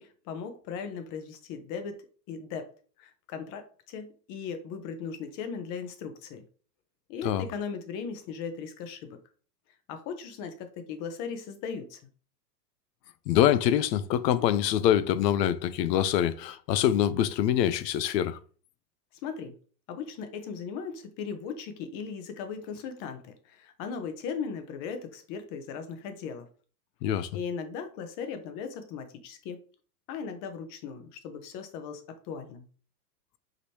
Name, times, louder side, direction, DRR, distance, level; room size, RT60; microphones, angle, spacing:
voice 1, 0.0-2.7 3.0-6.4 7.1-9.2 9.9-12.0 19.2-19.6 19.9-26.5 27.3-29.6 30.1-32.6, left 6 dB, 40° left, 0.9 m, -38 dB
voice 2, 13.3-18.4 27.0-27.3, left 11 dB, 80° left, 0.6 m, -25 dB
5.0 x 3.1 x 2.8 m
hypercardioid pair, 125°, 49 cm